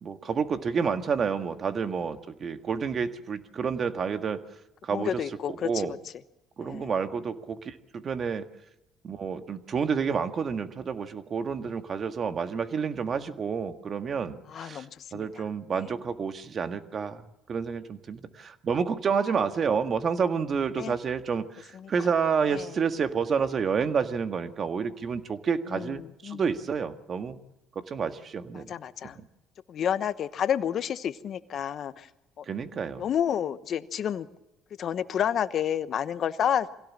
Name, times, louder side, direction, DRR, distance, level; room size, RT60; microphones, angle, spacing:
voice 1, 0.0-4.4 4.8-5.2 5.5-5.9 6.6-8.4 9.0-14.9 15.1-17.2 17.5-27.4 27.8-28.7 29.2-29.3 32.5-33.1, right 6 dB, 45° right, 8 dB, 1.8 m, -29 dB
voice 2, 4.9-6.0 6.6-6.9 14.5-15.3 15.8-15.9 20.8-20.9 21.7-21.9 22.5-22.7 25.7-26.4 28.5-29.2 29.7-32.1 32.4-32.5 33.0-34.3 34.8-36.7, left 9 dB, 55° left, 13 dB, 1.1 m, -30 dB
24.0 x 17.0 x 7.4 m, 0.95 s
supercardioid pair, 85°, 0 cm